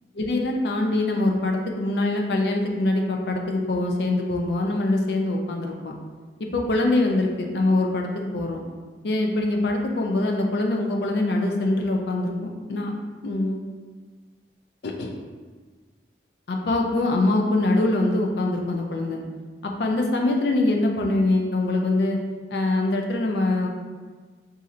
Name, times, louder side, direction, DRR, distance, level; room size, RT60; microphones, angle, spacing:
voice 1, 0.2-5.9 6.5-8.6 9.0-12.9 13.2-13.6 14.8-15.1 16.5-19.2 19.6-22.2 22.5-23.7, left 2 dB, 65° left, 2 dB, 0.5 m, -23 dB
2.6 x 2.5 x 4.1 m, 1.4 s
head